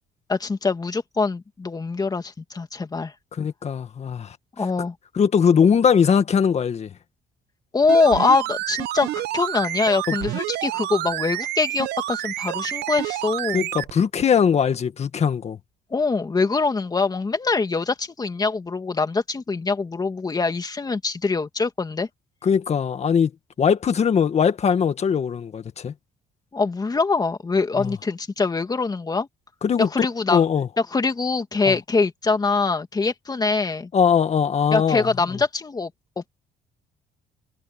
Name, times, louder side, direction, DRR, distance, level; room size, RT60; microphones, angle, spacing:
voice 1, 0.3-3.1 4.6-4.9 7.7-13.7 15.9-22.1 26.5-29.3 29.8-30.4 30.9-33.9 34.7-35.9 36.2-36.3, left 4 dB, 25° left, 2.3 m, -23 dB
voice 2, 3.3-4.4 5.2-6.9 10.1-10.2 13.5-15.6 22.4-23.3 23.6-25.9 27.8-28.0 29.6-29.9 30.3-30.7 31.7-31.8 33.9-35.4, left 7 dB, 40° left, 1.9 m, -20 dB
sound 1, 7.8-13.9 14.2-14.3, right 15 dB, 85° right, 1.1 m, -29 dB
cardioid pair, 110°, 17 cm